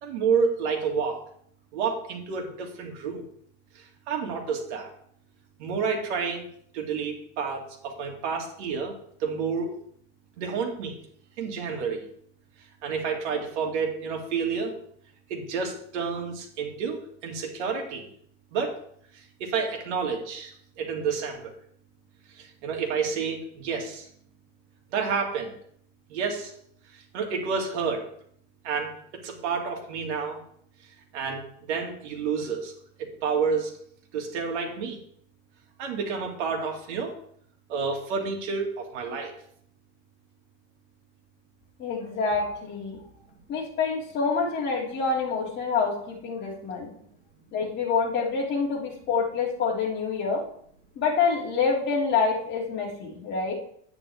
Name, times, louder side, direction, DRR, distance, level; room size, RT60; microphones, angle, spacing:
voice 1, 0.0-1.2 1.7-3.2 4.1-4.9 5.6-6.4 6.7-8.9 9.2-9.7 10.4-11.0 11.4-12.0 12.8-14.7 15.3-18.1 18.5-18.7 19.4-21.4 22.6-24.1 24.9-25.5 26.1-26.5 27.1-28.0 28.6-30.4 31.1-32.7 33.2-33.7 34.1-35.0 35.8-37.1 37.7-39.3, right 5 dB, 80° right, 2 dB, 2.5 m, -29 dB
voice 2, 41.8-43.0 43.5-46.9 47.5-50.4 50.9-53.5, left 5 dB, 30° left, -3 dB, 2.8 m, -27 dB
9.7 x 9.1 x 3.5 m, 0.64 s
supercardioid pair, 165°, 35 cm